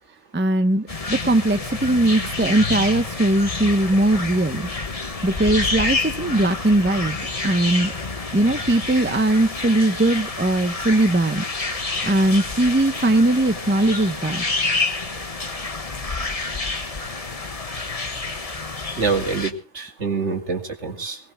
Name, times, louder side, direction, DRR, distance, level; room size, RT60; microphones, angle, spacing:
voice 1, 0.3-4.7 5.2-7.2 7.4-7.9 8.3-11.4 12.0-14.4, right 1 dB, 10° right, 10 dB, 0.7 m, -20 dB
sound 1, 0.9-19.5, left 3 dB, 30° left, 1.3 m, -28 dB
voice 2, 19.0-21.2, right 4 dB, 65° right, 4 dB, 2.6 m, -25 dB
23.5 x 18.5 x 2.2 m, 0.33 s
omnidirectional pair, 1.3 m